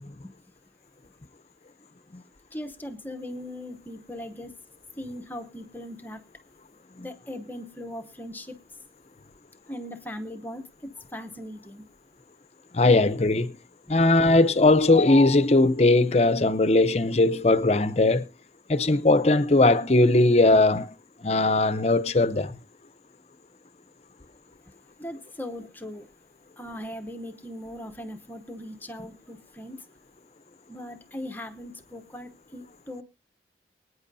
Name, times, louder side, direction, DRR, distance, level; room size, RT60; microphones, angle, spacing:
voice 1, 2.5-4.5 5.0-6.2 7.0-8.6 9.7-11.8 13.9-14.0 24.7-24.8 25.0-26.1 26.6-29.9 30.7-33.0, left 1 dB, 10° left, 0.9 m, -39 dB
voice 2, 12.7-13.6 13.9-18.2 18.7-20.9 21.2-22.6, left 2 dB, 35° left, 0.7 m, -19 dB
24.5 x 9.4 x 2.7 m
head